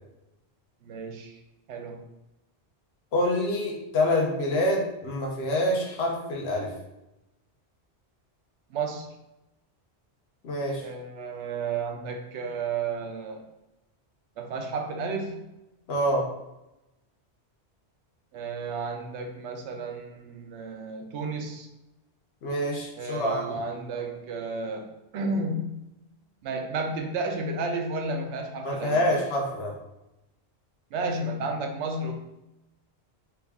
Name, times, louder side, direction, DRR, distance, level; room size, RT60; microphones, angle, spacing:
voice 1, 0.8-1.4 1.7-2.0 8.7-9.1 10.8-13.5 14.4-15.4 18.3-21.7 23.0-25.8 26.4-29.0 30.9-32.1, right 3 dB, 80° right, 4 dB, 0.9 m, -32 dB
voice 2, 3.1-6.7 10.4-10.8 15.9-16.3 22.4-23.6 28.6-29.8, left 1 dB, 65° left, -1 dB, 1.0 m, -26 dB
3.5 x 2.3 x 3.4 m, 0.93 s
omnidirectional pair, 1.1 m